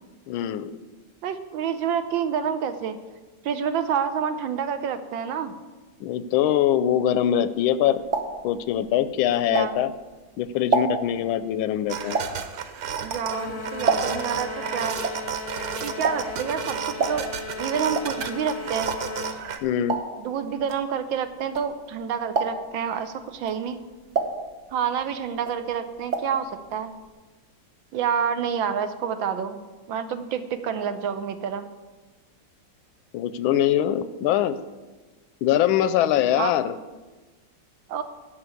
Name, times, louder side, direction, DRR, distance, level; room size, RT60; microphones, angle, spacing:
voice 1, 0.3-0.7 6.0-8.0 8.4-9.9 10.4-12.2 19.6-20.0 33.1-34.6 35.4-36.8, left 11 dB, 90° left, 14 dB, 1.4 m, -23 dB
voice 2, 1.2-3.0 3.4-5.5 9.5-9.8 13.0-15.0 15.8-17.3 17.6-18.9 20.2-23.8 24.7-26.9 27.9-29.6 29.9-31.7 36.4-36.5 37.9-38.0, right 7 dB, 75° right, 9 dB, 1.5 m, -28 dB
sound 1, 7.6-10.1 10.5-14.4 14.7-22.0 22.3-22.9 23.3-25.1 25.3-26.4 26.7-26.8 27.0-27.1, right 3 dB, 45° right, 1.1 m, -29 dB
sound 2, 11.9-19.6, right 7 dB, 60° right, 1.1 m, -33 dB
sound 3, 13.3-19.4, left 5 dB, 60° left, 0.9 m, -36 dB
11.0 x 5.6 x 8.4 m, 1.2 s
omnidirectional pair, 2.2 m